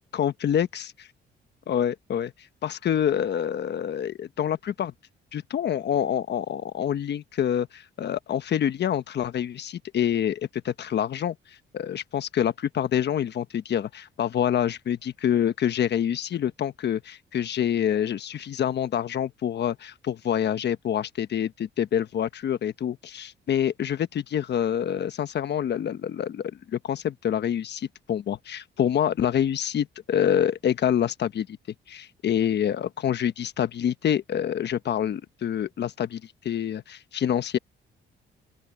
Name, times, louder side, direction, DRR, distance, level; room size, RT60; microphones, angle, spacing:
voice 1, 0.1-0.9 1.7-2.3 2.6-4.9 5.3-11.4 11.7-31.6 31.9-37.6, left 9 dB, 60° left, 1.1 m, -26 dB
open air
cardioid pair, 90°, 20 cm